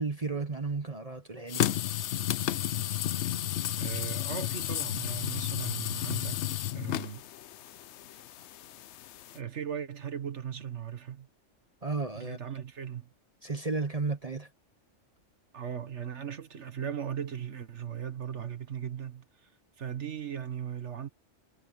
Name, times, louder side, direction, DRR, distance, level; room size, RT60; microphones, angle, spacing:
voice 1, 0.0-1.9 11.8-12.4 13.4-14.5, right 3 dB, 30° right, 1.2 m, -33 dB
sound 1, 1.5-9.4, left 12 dB, 70° left, 0.9 m, -32 dB
voice 2, 3.8-6.5 6.7-7.2 9.3-11.3 12.1-13.1 15.5-19.2 19.8-21.1, right 8 dB, 65° right, 1.8 m, -38 dB
omnidirectional pair, 1.3 m